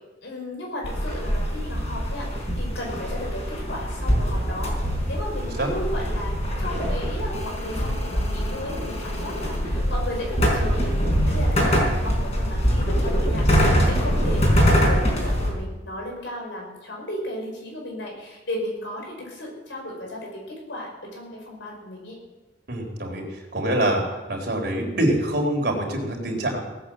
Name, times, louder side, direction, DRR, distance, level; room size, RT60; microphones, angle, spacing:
voice 1, 0.2-11.0 11.2-22.2, left 1 dB, 90° left, 0 dB, 5.5 m, -35 dB
sound 1, 0.8-15.5, equal, 35° left, 4.7 m, -23 dB
voice 2, 22.7-23.2 23.5-24.0 24.3-26.6, right 1 dB, 60° right, 1 dB, 3.9 m, -24 dB
18.0 x 8.8 x 7.5 m, 1.1 s
head